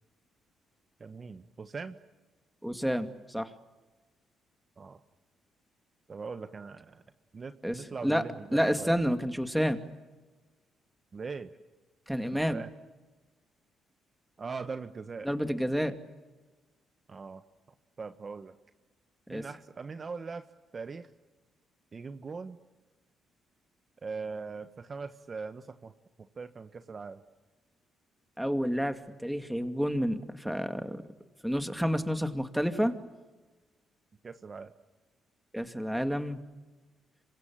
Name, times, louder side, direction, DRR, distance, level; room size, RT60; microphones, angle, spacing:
voice 1, 1.0-2.0 4.8-5.0 6.1-7.0 7.3-9.0 11.1-11.5 12.2-12.7 14.4-15.3 17.1-17.4 18.0-18.5 19.3-20.4 20.7-21.1 21.9-22.6 24.0-25.9 26.2-27.2 34.2-34.7, right 4 dB, 35° right, 9 dB, 1.4 m, -41 dB
voice 2, 2.6-3.5 7.6-8.2 8.5-9.8 12.1-12.6 15.2-15.9 19.3-19.4 28.4-31.0 31.4-32.9 35.5-36.4, equal, ahead, 8 dB, 2.4 m, -29 dB
27.0 x 24.5 x 8.8 m, 1.2 s
cardioid pair, 90°, 0 cm